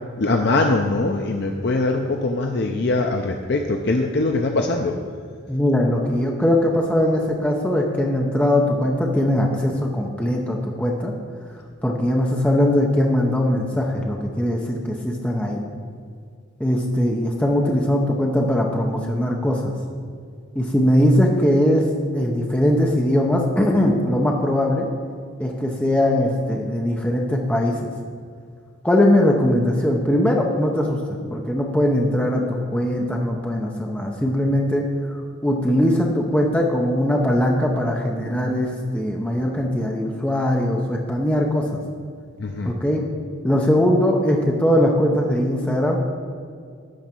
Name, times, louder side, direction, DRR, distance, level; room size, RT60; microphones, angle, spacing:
voice 1, 0.2-5.0 42.4-42.7, left 2 dB, 50° left, 3 dB, 0.5 m, -22 dB
voice 2, 5.5-11.1 11.8-15.6 16.6-19.7 20.5-21.8 22.1-24.9 25.4-27.9 28.8-41.8 42.6-43.0 43.4-46.0, left 1 dB, 5° left, 0 dB, 0.7 m, -20 dB
11.5 x 4.0 x 7.5 m, 2.2 s
head